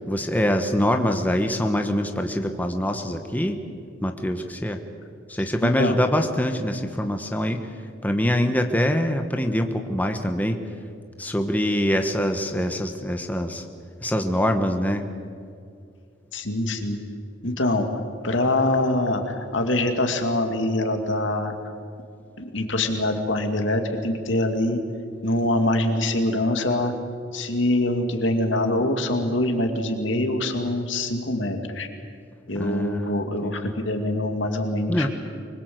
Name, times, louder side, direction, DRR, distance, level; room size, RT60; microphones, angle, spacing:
voice 1, 0.0-3.6 4.0-4.8 5.3-7.7 8.0-10.6 11.2-13.6 14.0-15.1 32.5-33.7 34.9-35.1, equal, 10° left, 5 dB, 1.2 m, -24 dB
voice 2, 5.6-6.0 16.3-17.0 17.4-17.9 18.2-21.6 22.4-24.8 25.2-26.9 27.3-31.9 32.5-35.1, left 1 dB, 75° left, 5 dB, 2.5 m, -24 dB
24.5 x 21.5 x 7.9 m, 2.3 s
head